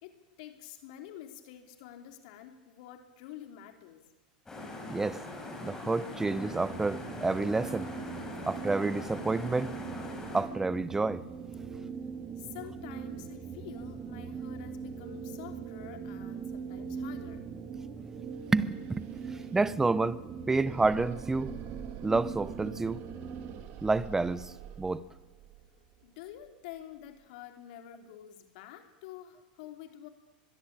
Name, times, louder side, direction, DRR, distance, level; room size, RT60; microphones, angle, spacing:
voice 1, 0.0-4.0 8.4-8.5 12.4-17.5 26.0-30.1, left 11 dB, 60° left, 3.0 m, -48 dB
sound 1, 4.4-10.4, left 2 dB, 10° left, 7.3 m, -42 dB
voice 2, 4.9-5.2 5.6-7.9 8.5-9.7 10.3-11.3 18.5-20.2 20.5-21.5 22.0-23.0 23.8-25.0, right 3 dB, 10° right, 0.9 m, -29 dB
sound 2, 6.2-23.6, right 6 dB, 30° right, 3.7 m, -41 dB
sound 3, 18.4-27.2, right 10 dB, 45° right, 3.2 m, -48 dB
24.0 x 22.0 x 8.8 m
supercardioid pair, 130°, 5 cm